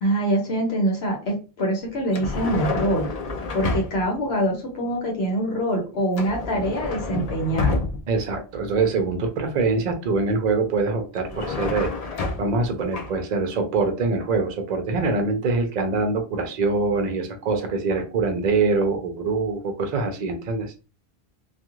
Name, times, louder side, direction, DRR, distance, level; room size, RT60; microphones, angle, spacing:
voice 1, 0.0-3.1 3.5-7.8, right 1 dB, 75° left, 1 dB, 1.0 m, -24 dB
sound 1, 2.1-4.2 6.1-8.2 11.1-12.6 12.9-13.1, left 3 dB, 50° left, 0.5 m, -28 dB
voice 2, 8.1-20.7, right 4 dB, 50° right, 6 dB, 0.6 m, -24 dB
2.4 x 2.4 x 2.9 m, 0.34 s
omnidirectional pair, 1.1 m